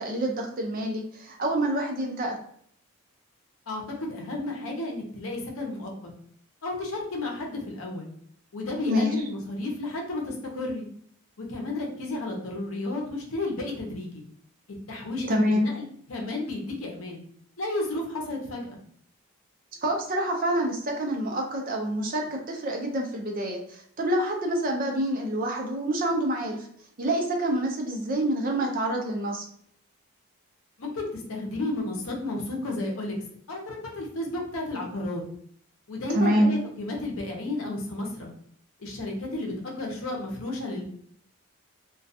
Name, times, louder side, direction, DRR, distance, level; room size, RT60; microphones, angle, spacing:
voice 1, 0.0-2.4 8.9-9.2 15.3-15.7 19.8-26.7 27.0-29.4 36.1-36.5, right 1 dB, 40° right, 1 dB, 0.5 m, -27 dB
voice 2, 3.7-5.9 6.6-8.1 8.5-10.9 11.4-14.2 14.9-17.2 17.6-18.7 30.8-33.2 33.5-35.2 35.9-38.3 38.8-40.9, left 2 dB, 75° left, 0 dB, 0.7 m, -32 dB
2.3 x 2.2 x 2.6 m, 0.64 s
head